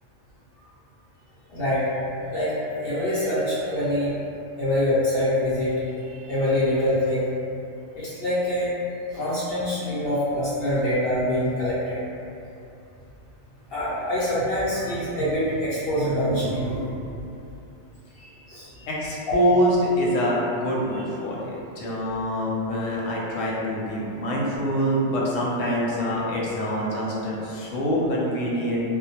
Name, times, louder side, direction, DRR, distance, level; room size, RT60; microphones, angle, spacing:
voice 1, 1.5-1.9 2.3-2.5 2.8-4.1 4.6-5.7 6.3-7.2 8.0-8.7 9.1-12.0 13.7-16.9 18.5-18.9, left 1 dB, 60° left, -10 dB, 0.8 m, -25 dB
voice 2, 18.9-29.0, equal, 90° left, -5 dB, 0.9 m, -25 dB
2.1 x 2.1 x 2.8 m, 2.7 s
omnidirectional pair, 1.3 m